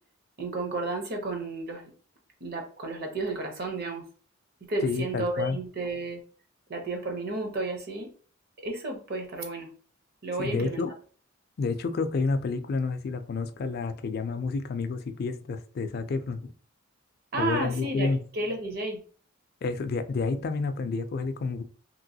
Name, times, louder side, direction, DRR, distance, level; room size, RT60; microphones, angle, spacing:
voice 1, 0.4-1.9 2.4-4.0 4.6-6.2 6.7-8.1 8.6-9.7 10.2-10.9 17.3-19.0, right 2 dB, 50° right, 3 dB, 0.7 m, -32 dB
voice 2, 4.8-5.6 10.4-10.9 11.6-16.5 17.4-18.2 19.6-21.6, left 4 dB, 50° left, 9 dB, 0.3 m, -29 dB
3.0 x 2.9 x 2.7 m, 0.42 s
head